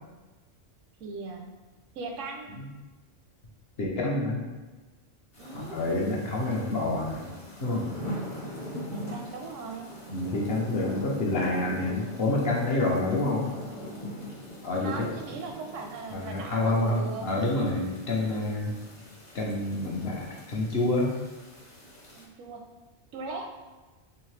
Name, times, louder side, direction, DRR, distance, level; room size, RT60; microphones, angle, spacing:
voice 1, 1.0-1.5 1.9-2.6 3.9-4.3 5.4-5.8 8.9-9.9 14.8-17.3 22.2-22.6 23.1-23.5, right 4 dB, 85° right, 3 dB, 0.9 m, -39 dB
voice 2, 3.8-4.4 5.5-7.3 7.6-7.9 10.1-13.5 14.6-14.9 16.1-18.7 19.3-21.1, left 2 dB, 55° left, -3 dB, 0.9 m, -28 dB
sound 1, 5.3-22.2, equal, 30° left, 0.7 m, -42 dB
3.7 x 3.0 x 3.2 m, 1.2 s
omnidirectional pair, 1.3 m